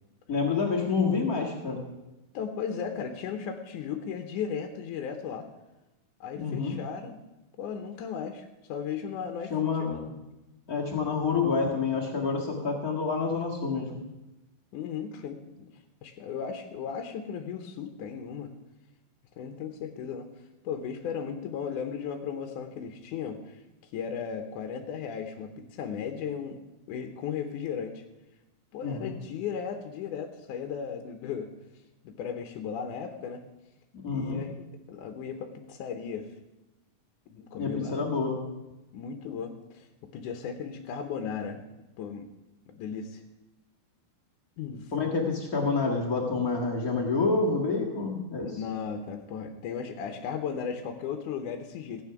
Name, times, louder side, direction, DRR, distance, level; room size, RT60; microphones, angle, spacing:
voice 1, 0.3-1.8 6.3-6.7 9.5-10.1 10.7-14.0 28.8-29.1 33.9-34.4 37.6-38.4 44.9-48.5, left 4 dB, 50° left, -1 dB, 1.0 m, -28 dB
voice 2, 2.3-5.5 6.2-7.2 7.6-9.5 9.8-10.0 14.7-15.6 16.0-18.5 19.4-20.3 20.6-23.6 23.9-26.6 26.9-28.0 28.7-31.5 32.0-33.4 34.1-34.5 34.9-36.3 37.3-38.0 38.9-39.9 40.1-41.6 42.0-42.3 42.7-43.2 44.6-44.9 48.4-52.0, left 7 dB, 75° left, 6 dB, 2.0 m, -36 dB
15.5 x 9.1 x 5.9 m, 1.0 s
omnidirectional pair, 4.4 m